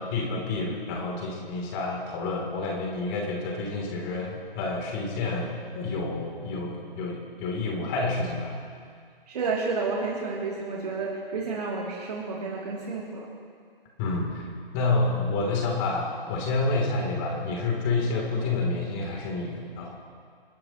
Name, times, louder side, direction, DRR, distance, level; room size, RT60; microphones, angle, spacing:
voice 1, 0.0-5.5 5.7-8.5 14.0-14.5 14.7-20.0, left 3 dB, 25° left, 0 dB, 3.1 m, -29 dB
voice 2, 9.3-13.3, right 4 dB, 45° right, -3 dB, 2.9 m, -30 dB
28.0 x 12.5 x 3.1 m, 2.1 s
figure-of-eight pair, 145°, 29 cm